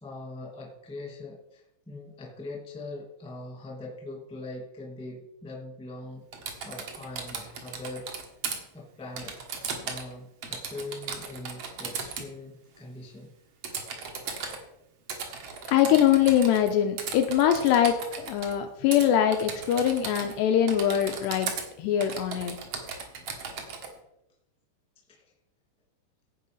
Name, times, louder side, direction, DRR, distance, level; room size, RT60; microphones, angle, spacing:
voice 1, 0.0-8.1 8.7-13.3 25.1-25.2, left 2 dB, 5° left, -1 dB, 0.7 m, -42 dB
Typing, 6.3-8.6 9.2-10.1 10.4-12.3 13.6-14.6 15.1-16.7 17.0-18.5 18.9-19.1 19.3-20.4 20.7-21.7 22.0-23.9, right 5 dB, 85° right, 1.3 m, -36 dB
voice 2, 15.7-21.5 21.8-22.6, left 10 dB, 80° left, 6 dB, 2.5 m, -23 dB
16.5 x 5.6 x 5.4 m, 0.83 s
omnidirectional pair, 5.4 m